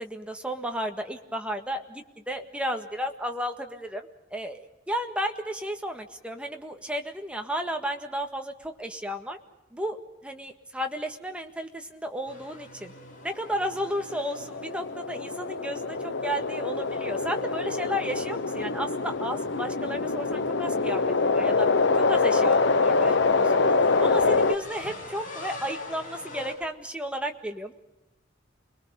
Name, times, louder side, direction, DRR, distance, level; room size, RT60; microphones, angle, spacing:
voice 1, 0.0-9.4 9.7-12.9 13.2-21.7 22.0-23.8 24.0-27.7, equal, 5° right, 4 dB, 1.7 m, -33 dB
sound 1, 12.3-26.5, left 1 dB, 45° left, 7.5 m, -45 dB
sound 2, 13.7-24.5, left 4 dB, 65° left, 0.9 m, -25 dB
29.5 x 22.0 x 5.2 m, 0.99 s
head